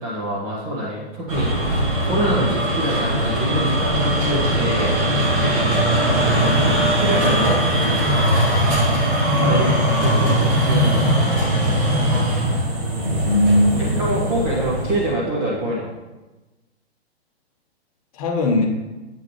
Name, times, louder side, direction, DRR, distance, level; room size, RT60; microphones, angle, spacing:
voice 1, 0.0-4.9 6.4-7.6 9.3-11.4 13.8-15.9, right 1 dB, 10° right, -7 dB, 0.4 m, -25 dB
sound 1, 1.3-15.1, right 1 dB, 30° right, 1.3 m, -20 dB
voice 2, 13.0-14.0 18.1-18.7, left 1 dB, 35° left, 2 dB, 0.9 m, -20 dB
8.2 x 3.7 x 3.1 m, 1.1 s
figure-of-eight pair, 120°, 33 cm